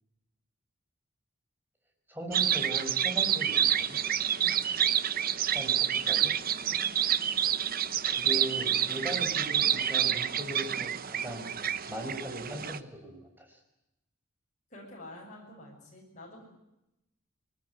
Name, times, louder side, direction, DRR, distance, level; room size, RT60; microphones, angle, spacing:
voice 1, 2.1-3.6 3.9-4.0 5.5-6.3 8.1-11.5 11.9-13.6, right 1 dB, 10° right, 1 dB, 5.3 m, -39 dB
sound 1, 2.3-12.8, right 9 dB, 40° right, 0.9 m, -28 dB
voice 2, 6.6-6.9 14.7-16.4, left 1 dB, 35° left, -3 dB, 7.7 m, -48 dB
22.5 x 20.0 x 9.6 m, 0.89 s
head